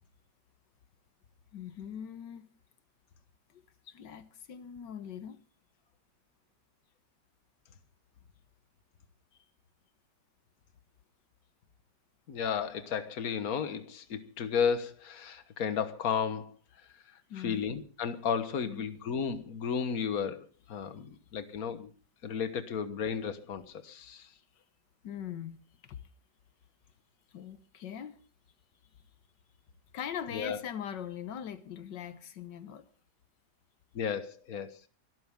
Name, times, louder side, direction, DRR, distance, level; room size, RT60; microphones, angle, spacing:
voice 1, 1.5-2.5 3.5-5.4 17.3-17.6 18.6-18.9 25.0-26.0 27.3-28.2 29.9-32.9, left 9 dB, 85° left, 1.7 m, -41 dB
voice 2, 12.3-16.5 17.4-21.9 22.2-24.3 30.3-30.6 34.0-34.9, left 7 dB, 60° left, 1.7 m, -33 dB
24.5 x 13.0 x 3.7 m
omnidirectional pair, 1.9 m